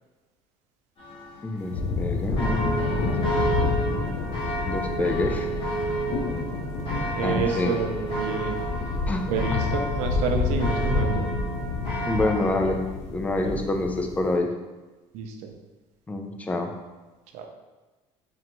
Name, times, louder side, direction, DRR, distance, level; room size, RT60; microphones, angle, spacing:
sound 1, 1.0-12.7, right 2 dB, 45° left, 1.0 m, -32 dB
voice 1, 1.4-3.8 4.7-5.5 7.2-7.7 9.1-9.6 12.1-12.8 13.1-14.5 16.1-16.7, left 2 dB, 10° left, 4 dB, 0.4 m, -27 dB
sound 2, 1.7-14.4, left 4 dB, 65° left, 0.5 m, -29 dB
voice 2, 7.2-8.6 9.3-11.3 13.4-13.5 15.1-15.5 17.3-17.5, right 5 dB, 70° right, 4 dB, 0.6 m, -29 dB
3.8 x 3.3 x 3.0 m, 1.2 s
cardioid pair, 150°, 12 cm